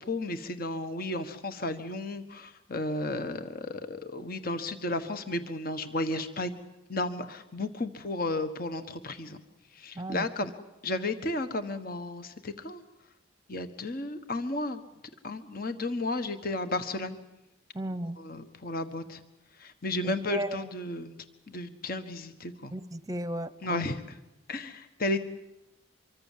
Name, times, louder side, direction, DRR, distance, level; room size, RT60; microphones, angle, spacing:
voice 1, 0.0-6.5 6.9-9.4 9.7-10.5 10.8-12.8 13.5-14.8 15.2-17.2 18.2-19.2 19.6-21.2 21.5-22.7 23.6-24.2 24.5-25.2, left 2 dB, 45° left, 9 dB, 1.5 m, -33 dB
voice 2, 10.0-10.3 17.7-18.2 20.0-20.7 22.7-23.8, right 1 dB, 15° right, 13 dB, 0.9 m, -35 dB
25.0 x 24.0 x 7.5 m, 0.94 s
head